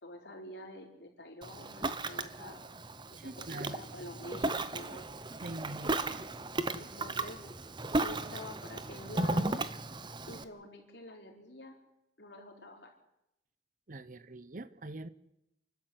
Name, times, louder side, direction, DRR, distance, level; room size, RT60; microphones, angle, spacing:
voice 1, 0.0-2.6 3.1-5.1 6.7-7.7 8.0-9.6 10.3-11.8 12.2-13.0, left 1 dB, 75° left, 4.6 m, -48 dB
Ocean, 1.4-10.4, right 2 dB, 25° right, 0.9 m, -35 dB
voice 2, 3.2-3.8 5.4-6.0 13.9-15.1, right 2 dB, 50° right, 0.8 m, -43 dB
29.0 x 12.5 x 8.0 m
head